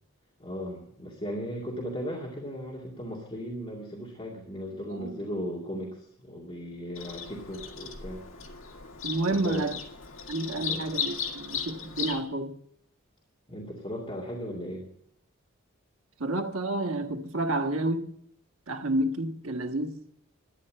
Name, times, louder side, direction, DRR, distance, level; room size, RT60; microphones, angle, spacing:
voice 1, 0.4-8.2 9.3-9.6 10.5-10.9 13.5-14.9, equal, 25° left, 2.3 m, -37 dB
voice 2, 4.9-5.2 9.0-9.8 10.3-12.5 16.2-18.1 18.7-20.0, right 2 dB, 85° right, 1.5 m, -30 dB
Bird vocalization bird call bird song, 7.0-12.2, left 7 dB, 70° left, 2.0 m, -36 dB
12.5 x 9.8 x 7.5 m
head